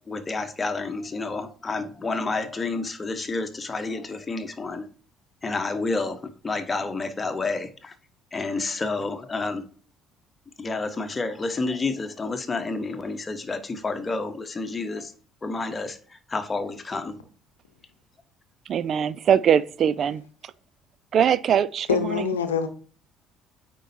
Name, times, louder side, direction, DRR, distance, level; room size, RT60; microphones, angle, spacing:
voice 1, 0.1-4.9 5.4-7.9 8.3-9.7 10.6-15.1 15.4-17.2, left 3 dB, 25° left, 1.1 m, -30 dB
voice 2, 18.7-20.2 21.1-22.3, right 8 dB, 50° right, 0.3 m, -22 dB
voice 3, 21.9-22.7, left 7 dB, 80° left, 0.8 m, -24 dB
9.0 x 4.5 x 2.8 m
figure-of-eight pair, 55°, 0 cm